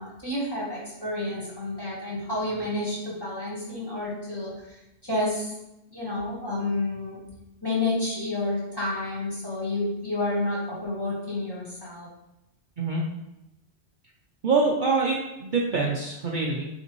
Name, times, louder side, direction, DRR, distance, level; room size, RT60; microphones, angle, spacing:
voice 1, 0.0-4.8 5.0-5.5 5.9-7.2 7.6-12.1, left 2 dB, 20° left, -7 dB, 1.4 m, -30 dB
voice 2, 14.4-16.7, right 4 dB, 55° right, -2 dB, 0.6 m, -25 dB
5.4 x 3.3 x 3.0 m, 0.92 s
omnidirectional pair, 1.2 m